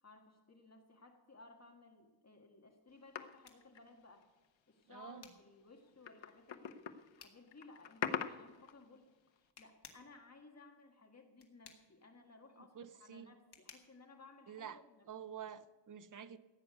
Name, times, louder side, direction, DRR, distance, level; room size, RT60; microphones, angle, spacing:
voice 1, 0.0-4.2 4.7-15.0, left 3 dB, 35° left, 3 dB, 1.7 m, -60 dB
sound 1, 2.7-15.2, left 5 dB, 60° left, 1.9 m, -64 dB
sound 2, 3.2-4.5 4.8-4.9 5.8-9.0 9.4-9.5, left 8 dB, 80° left, 0.9 m, -43 dB
voice 2, 4.9-5.3 12.6-13.3 14.5-16.4, right 8 dB, 45° right, 13 dB, 0.7 m, -49 dB
15.5 x 9.4 x 6.8 m, 1.2 s
wide cardioid pair, 150°, 45 cm